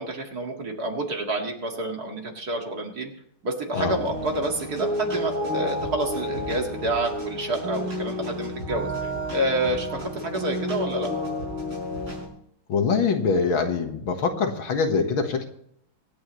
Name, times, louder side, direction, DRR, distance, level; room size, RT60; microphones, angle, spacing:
voice 1, 0.0-3.1 3.4-11.1, right 2 dB, 45° right, 2 dB, 2.4 m, -28 dB
sound 1, 3.7-12.3, left 1 dB, 75° right, 6.4 m, -31 dB
voice 2, 12.7-15.5, left 5 dB, 70° left, 5 dB, 2.2 m, -24 dB
25.0 x 8.9 x 3.1 m, 0.70 s
omnidirectional pair, 2.3 m